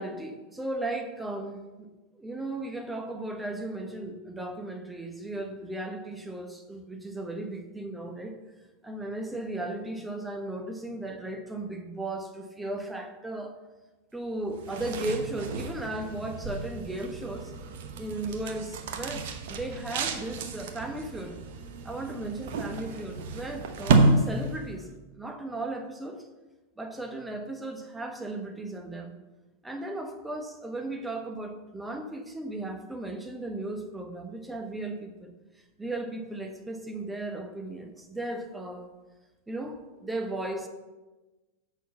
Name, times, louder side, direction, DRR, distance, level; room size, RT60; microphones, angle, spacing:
voice 1, 0.0-1.9 2.2-8.4 8.8-13.6 14.1-17.5 18.0-21.4 21.8-24.9 25.1-26.3 26.8-29.1 29.6-35.3 35.8-38.9 39.5-40.7, right 2 dB, 5° right, 5 dB, 1.2 m, -36 dB
sound 1, 14.5-24.8, right 3 dB, 55° right, 0.9 m, -30 dB
6.4 x 6.3 x 7.0 m, 1.1 s
figure-of-eight pair, 90°, 0 cm